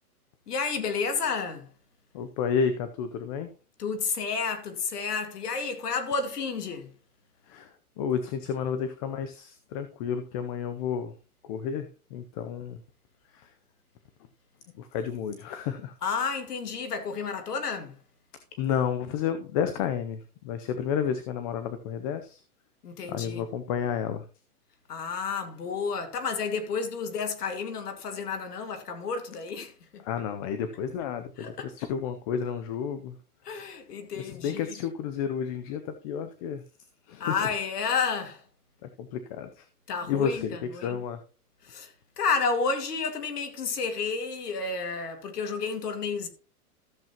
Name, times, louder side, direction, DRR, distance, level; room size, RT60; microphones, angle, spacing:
voice 1, 0.5-1.7 3.8-6.9 16.0-18.0 22.8-23.5 24.9-30.0 31.4-31.7 33.4-34.7 37.2-38.4 39.9-41.0 41.6-46.3, left 5 dB, 90° left, 2.4 m, -31 dB
voice 2, 2.1-3.5 7.5-7.7 8.0-11.1 11.5-12.8 13.3-13.5 14.7-15.9 18.5-22.4 23.1-24.3 30.0-33.2 33.5-33.6 34.2-36.6 37.1-37.5 38.8-39.7 40.1-41.2, left 7 dB, 25° left, 0.5 m, -31 dB
13.5 x 7.4 x 2.9 m
hypercardioid pair, 145°, 45 cm